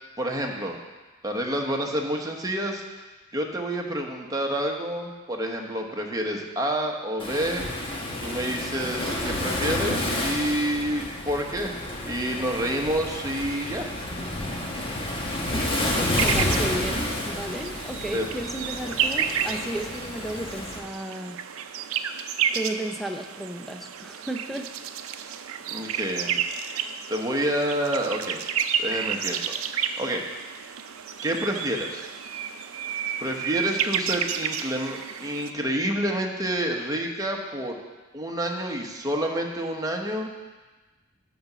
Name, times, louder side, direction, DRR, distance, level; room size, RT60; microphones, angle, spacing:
voice 1, 0.2-0.8 1.2-2.8 3.3-7.8 8.2-13.9 18.1-18.2 25.7-26.4 27.1-28.4 28.8-29.5 30.0-30.3 31.2-32.1 33.2-37.8 38.1-40.3, right 1 dB, 20° right, 1 dB, 1.0 m, -28 dB
Waves surf, 7.2-20.8, left 1 dB, 25° left, 1.2 m, -30 dB
voice 2, 15.5-21.4 22.5-24.7, right 1 dB, ahead, 4 dB, 0.6 m, -33 dB
sound 1, 16.1-35.5, right 8 dB, 85° right, 0.5 m, -31 dB
11.0 x 4.0 x 6.1 m, 1.2 s
head